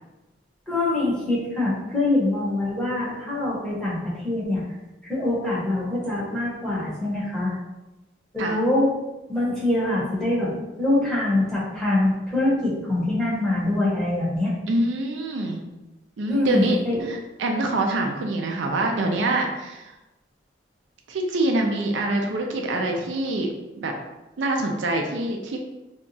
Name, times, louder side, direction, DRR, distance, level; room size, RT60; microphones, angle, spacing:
voice 1, 0.7-4.6 5.0-7.5 8.3-8.9 9.3-10.5 10.8-14.5 16.3-17.0, left 2 dB, 5° left, -9 dB, 1.0 m, -24 dB
voice 2, 14.7-15.7 16.2-20.0 21.1-23.5 23.8-23.9 24.4-25.6, right 2 dB, 75° right, 2 dB, 0.4 m, -25 dB
2.8 x 2.3 x 4.0 m, 1.0 s
head